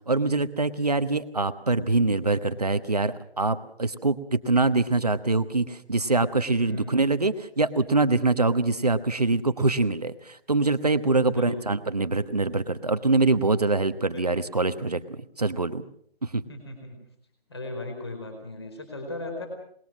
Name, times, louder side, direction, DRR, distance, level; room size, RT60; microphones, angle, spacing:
voice 1, 0.1-15.8 16.2-16.4, right 3 dB, 40° right, 11 dB, 1.2 m, -24 dB
voice 2, 6.6-7.1 11.3-11.7 13.9-14.3 16.5-17.0 17.5-19.5, left 2 dB, 25° left, 4 dB, 4.8 m, -37 dB
25.5 x 21.0 x 6.2 m, 0.64 s
figure-of-eight pair, 180°, 30 cm